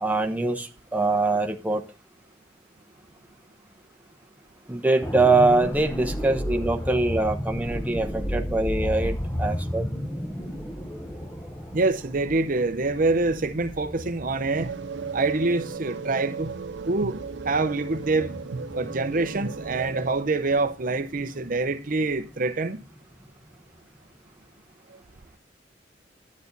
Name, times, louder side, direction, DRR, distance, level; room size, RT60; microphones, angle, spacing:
voice 1, 0.0-1.8 4.7-9.8, right 2 dB, 10° right, 1.0 m, -23 dB
sound 1, 5.0-22.9 23.2-23.4, equal, 15° left, 1.2 m, -34 dB
voice 2, 11.7-14.7 15.1-16.5 16.9-17.2 17.5-18.3 18.8-22.8, right 3 dB, 50° right, 0.7 m, -25 dB
sound 2, 14.5-20.1, right 5 dB, 80° right, 0.5 m, -36 dB
11.5 x 8.5 x 4.0 m
head